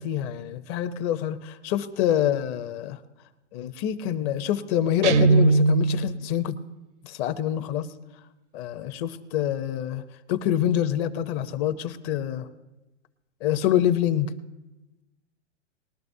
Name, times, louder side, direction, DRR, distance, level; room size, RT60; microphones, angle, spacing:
voice 1, 0.0-3.0 3.5-6.6 7.0-7.9 8.5-10.0 10.3-12.5 13.4-14.3, left 10 dB, 25° left, 10 dB, 0.6 m, -26 dB
Guitar, 5.0-6.2, right 3 dB, 75° right, 0.8 m, -19 dB
20.5 x 12.0 x 2.7 m, 1.0 s
hypercardioid pair, 135°, 36 cm